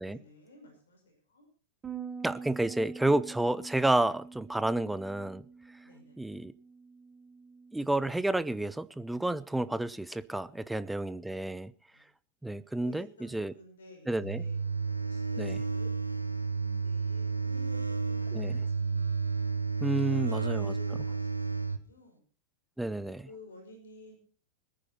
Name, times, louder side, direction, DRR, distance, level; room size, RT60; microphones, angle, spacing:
voice 1, 0.0-1.5 5.8-6.2 10.5-10.8 11.9-12.1 12.4-19.1 19.9-22.3 23.0-24.2, left 2 dB, 65° left, 5.7 m, -54 dB
Bass guitar, 1.8-8.1, right 5 dB, 20° right, 1.8 m, -46 dB
voice 2, 2.2-5.5 6.2-6.5 7.7-11.7 12.4-13.1 13.3-13.5 14.1-14.4 15.4-15.6 18.3-18.5 19.8-20.7 22.8-23.2, right 2 dB, 5° right, 0.7 m, -30 dB
sound 1, 14.2-21.8, right 4 dB, 85° right, 1.0 m, -31 dB
21.5 x 9.9 x 4.3 m
figure-of-eight pair, 90°, 0 cm